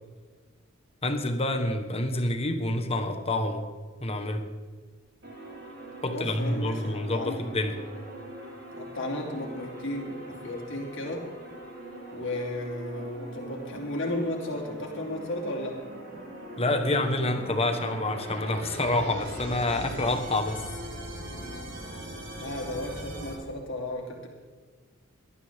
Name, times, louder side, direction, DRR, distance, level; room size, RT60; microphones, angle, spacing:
voice 1, 1.0-3.6 4.0-4.4 6.0-7.7 16.6-20.6, left 1 dB, 30° left, 6 dB, 1.4 m, -27 dB
sound 1, 5.2-23.3, right 1 dB, 55° right, 5.3 m, -41 dB
voice 2, 6.1-7.4 8.7-11.3 12.1-15.8 22.4-24.3, left 1 dB, 60° left, -1 dB, 3.0 m, -34 dB
19.0 x 12.5 x 3.7 m, 1.4 s
head